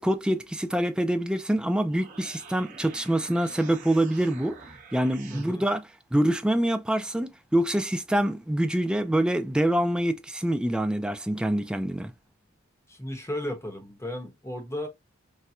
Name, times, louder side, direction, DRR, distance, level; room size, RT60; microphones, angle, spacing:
voice 1, 0.0-4.6 4.9-5.8 6.1-12.1, right 1 dB, 5° right, 0.3 m, -25 dB
sound 1, 1.7-5.5, right 5 dB, 40° right, 1.0 m, -47 dB
voice 2, 5.3-5.6 12.9-14.9, left 1 dB, 15° left, 1.0 m, -34 dB
4.2 x 2.1 x 2.4 m
head